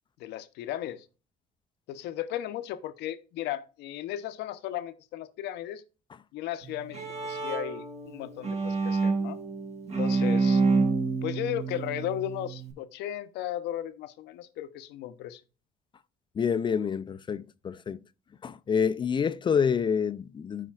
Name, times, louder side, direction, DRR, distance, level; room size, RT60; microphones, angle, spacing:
voice 1, 0.2-1.1 1.9-5.8 6.3-9.4 10.0-10.6 11.2-15.4, left 12 dB, 85° left, 0.7 m, -35 dB
Bowed string instrument, 6.6-12.7, right 4 dB, 40° right, 1.7 m, -28 dB
voice 2, 16.4-18.0 18.4-20.7, left 6 dB, 30° left, 0.3 m, -27 dB
12.5 x 4.9 x 2.4 m
cardioid pair, 110°, 17 cm